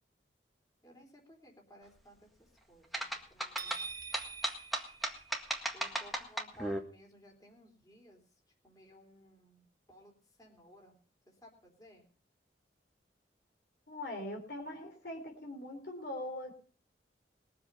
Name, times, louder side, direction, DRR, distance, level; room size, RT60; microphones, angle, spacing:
voice 1, 0.8-3.8 5.7-8.2 8.6-10.1 10.4-11.0 11.3-12.1, equal, 20° left, 1 dB, 3.7 m, -58 dB
sound 1, 2.9-6.8, right 1 dB, ahead, 1.7 m, -36 dB
sound 2, 3.6-5.8, right 5 dB, 20° right, 0.9 m, -45 dB
voice 2, 13.9-16.6, left 1 dB, 65° left, 3 dB, 3.8 m, -41 dB
21.0 x 7.8 x 5.6 m, 0.40 s
head